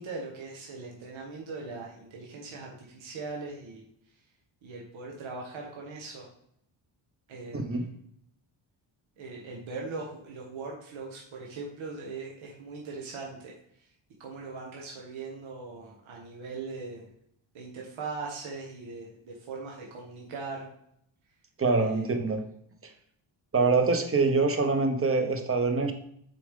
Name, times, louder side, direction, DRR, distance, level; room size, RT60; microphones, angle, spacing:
voice 1, 0.0-3.8 4.6-6.3 7.3-7.9 9.2-13.5 14.2-17.1 17.5-20.7 21.8-22.1, right 3 dB, 70° right, -1 dB, 1.5 m, -40 dB
voice 2, 7.5-7.9 21.6-22.4 22.8-22.9 23.5-25.9, right 3 dB, 25° right, 6 dB, 1.0 m, -25 dB
6.8 x 5.0 x 3.7 m, 0.70 s
cardioid pair, 100°, 49 cm